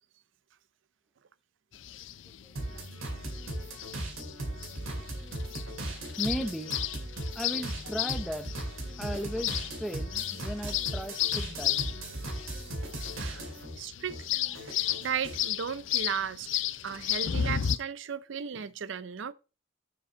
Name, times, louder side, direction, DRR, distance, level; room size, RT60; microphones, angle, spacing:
sound 1, 1.7-17.8, left 11 dB, 65° left, 0.4 m, -34 dB
voice 1, 2.4-2.9 3.6-3.7 6.2-6.8 7.3-8.5 9.0-11.8, equal, ahead, 0.7 m, -36 dB
sound 2, 2.6-13.8 14.1-15.5, right 1 dB, 80° right, 2.4 m, -38 dB
voice 2, 13.8-19.3, right 7 dB, 65° right, 0.5 m, -36 dB
6.7 x 5.4 x 5.1 m
head